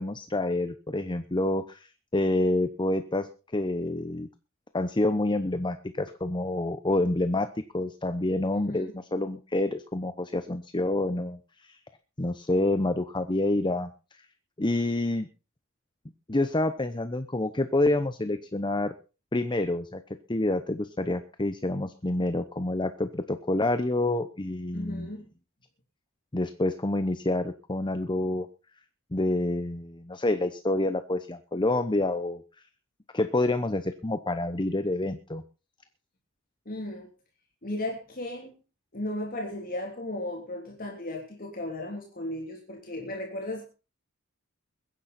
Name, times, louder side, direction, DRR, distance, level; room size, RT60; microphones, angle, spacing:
voice 1, 0.0-4.3 4.7-7.5 7.7-11.8 12.2-13.9 14.6-15.3 16.3-18.9 19.3-20.0 20.3-25.1 26.3-28.5 29.1-32.4 33.1-35.4, left 2 dB, 20° left, 10 dB, 0.9 m, -28 dB
voice 2, 8.5-8.8 24.7-25.2 36.6-37.1 37.6-38.5 38.9-43.7, left 1 dB, 45° left, 1 dB, 3.1 m, -35 dB
22.0 x 10.5 x 4.3 m, 0.33 s
head